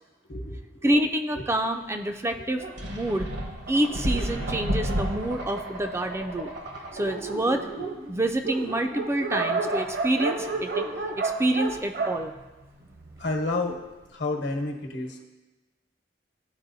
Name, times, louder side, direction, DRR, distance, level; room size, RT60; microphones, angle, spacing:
voice 1, 0.3-0.9 13.2-13.8 14.1-15.3, left 2 dB, 75° left, 3 dB, 1.1 m, -30 dB
voice 2, 0.8-3.3 3.7-6.5 6.9-7.7 8.1-10.8 11.2-12.3, right 1 dB, 15° right, 6 dB, 0.3 m, -27 dB
Dog, 2.5-5.5 6.2-6.3 6.6-6.7 6.9-13.3, right 3 dB, 55° right, 0.7 m, -32 dB
sound 1, 2.8-7.3, equal, 75° right, 1.1 m, -31 dB
13.0 x 4.3 x 2.7 m, 1.1 s
head